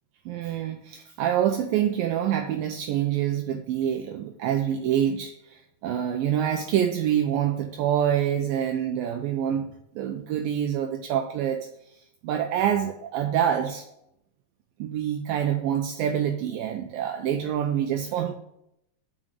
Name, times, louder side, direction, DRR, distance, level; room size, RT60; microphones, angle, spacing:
voice 1, 0.3-11.7 12.2-13.8 14.8-18.3, right 10 dB, 80° right, 4 dB, 2.0 m, -26 dB
8.0 x 6.3 x 6.5 m, 0.77 s
omnidirectional pair, 4.8 m